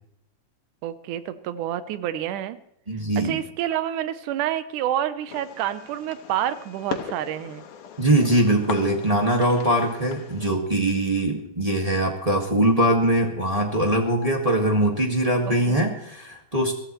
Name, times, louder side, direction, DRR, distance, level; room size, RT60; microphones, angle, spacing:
voice 1, 0.8-2.6 3.2-7.6 15.5-15.8, right 11 dB, 80° right, 12 dB, 2.3 m, -28 dB
voice 2, 2.9-3.4 8.0-16.7, right 1 dB, 20° right, 0 dB, 1.1 m, -22 dB
Fireworks, 5.3-10.5, left 8 dB, 85° left, 2.8 m, -38 dB
22.5 x 14.5 x 3.1 m, 0.77 s
omnidirectional pair, 3.6 m